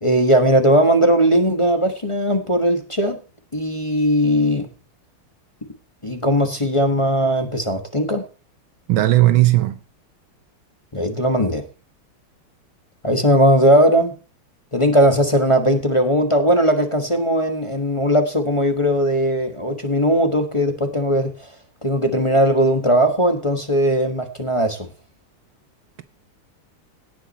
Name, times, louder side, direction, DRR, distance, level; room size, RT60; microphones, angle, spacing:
voice 1, 0.0-3.2 3.5-4.7 6.0-8.3 10.9-11.6 13.0-14.1 14.7-21.5 21.8-24.9, equal, 20° left, 1.0 m, -18 dB
voice 2, 8.9-9.8, right 16 dB, 70° right, 1.4 m, -15 dB
17.5 x 6.1 x 4.1 m
omnidirectional pair, 2.4 m